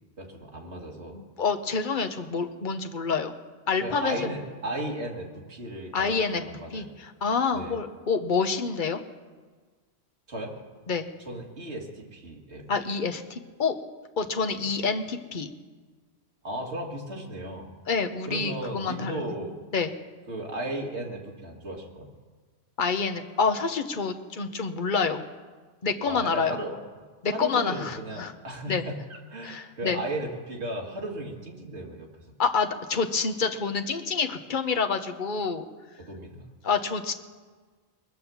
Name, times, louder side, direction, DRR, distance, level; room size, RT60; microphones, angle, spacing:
voice 1, 0.2-1.2 3.8-6.2 6.5-6.9 7.5-7.8 10.3-10.6 11.3-12.7 14.6-14.7 16.4-17.7 18.3-19.6 20.3-22.1 26.1-29.0 29.3-32.1 36.0-36.5, right 1 dB, 80° right, 0 dB, 2.4 m, -35 dB
voice 2, 1.1-3.3 3.7-4.3 5.9-6.4 6.7-9.0 10.9-11.1 12.7-13.7 14.2-15.5 17.9-19.3 19.7-19.9 22.8-25.2 25.8-26.6 27.2-28.3 28.7-28.8 29.4-30.0 32.4-35.6 36.6-37.1, left 5 dB, 50° left, 6 dB, 1.0 m, -27 dB
22.5 x 7.5 x 7.1 m, 1.4 s
omnidirectional pair, 1.1 m